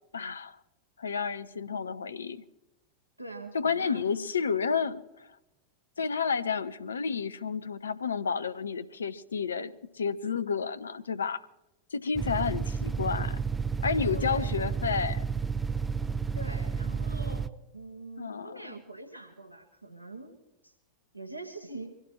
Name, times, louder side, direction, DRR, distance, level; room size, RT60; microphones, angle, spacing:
voice 1, 0.1-0.6 1.0-2.4 3.5-5.4 6.0-11.4 11.9-13.4 13.8-15.2 18.2-18.7, left 6 dB, 70° left, 0.7 m, -31 dB
voice 2, 3.2-4.0 12.4-12.5 14.1-14.5 16.3-20.8 21.1-21.9, right 2 dB, 90° left, 1.4 m, -44 dB
sound 1, 12.2-17.5, right 5 dB, 10° right, 0.6 m, -31 dB
24.5 x 17.0 x 3.2 m
figure-of-eight pair, 90°, 0 cm